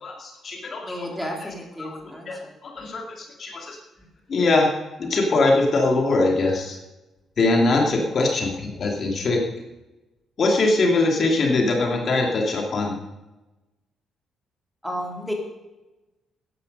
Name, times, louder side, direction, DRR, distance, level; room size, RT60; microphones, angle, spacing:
voice 1, 0.0-1.1 1.8-2.0 2.3-3.8 4.3-4.7 5.0-6.8 7.4-9.4 10.4-12.9, left 2 dB, 50° left, 1 dB, 2.6 m, -22 dB
voice 2, 0.8-2.9 14.8-15.3, equal, ahead, 0 dB, 3.5 m, -33 dB
14.5 x 10.5 x 5.4 m, 1.0 s
cardioid pair, 90°, 0 cm